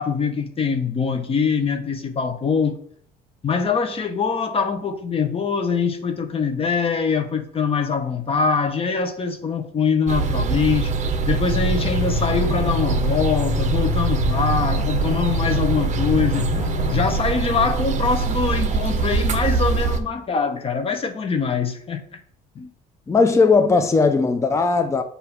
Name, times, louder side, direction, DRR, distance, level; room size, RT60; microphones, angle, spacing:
voice 1, 0.0-2.8 3.4-10.9 11.3-16.5 16.9-22.2 22.5-22.7, left 5 dB, 35° left, 0.9 m, -23 dB
sound 1, 10.1-20.0, right 5 dB, 45° right, 0.8 m, -23 dB
sound 2, 11.5-17.2, left 14 dB, 75° left, 0.6 m, -28 dB
voice 2, 23.1-25.0, left 4 dB, 15° left, 0.5 m, -17 dB
7.8 x 2.8 x 5.8 m
cardioid pair, 110°, 17 cm